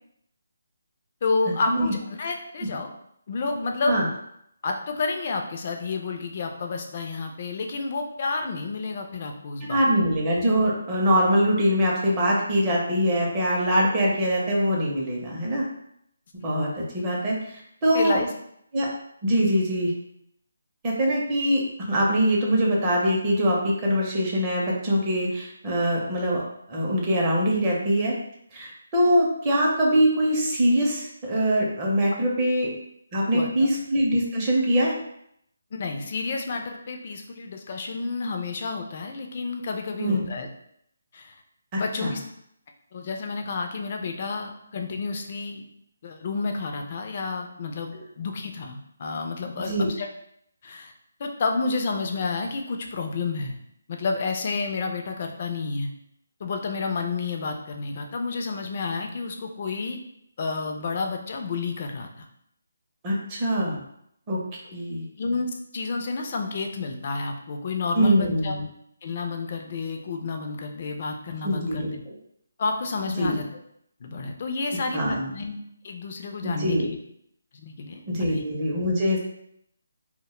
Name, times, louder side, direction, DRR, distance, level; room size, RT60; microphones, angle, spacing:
voice 1, 1.2-2.9 3.3-4.0 4.6-9.8 17.9-18.3 33.3-33.5 35.7-40.5 41.1-41.3 41.8-42.2 42.9-45.6 46.0-50.1 50.6-50.9 51.2-53.6 53.9-55.9 56.4-60.0 60.4-62.1 64.7-64.8 65.2-65.5 65.7-68.5 69.0-72.0 72.6-73.4 74.0-75.6 75.8-77.0 77.5-78.4, left 4 dB, 35° left, 3 dB, 0.3 m, -30 dB
voice 2, 9.7-15.7 16.3-18.2 18.7-18.9 19.2-19.9 20.8-26.4 26.7-28.1 28.5-32.7 33.1-34.9 40.0-40.2 41.7-42.1 47.9-48.0 49.6-49.9 63.0-63.8 64.3-64.4 64.7-65.1 67.9-68.6 71.4-71.9 73.2-73.4 74.9-75.3 76.4-76.9 78.1-79.2, equal, 20° right, -3 dB, 0.5 m, -23 dB
2.1 x 2.1 x 3.0 m, 0.72 s
hypercardioid pair, 170°, 0 cm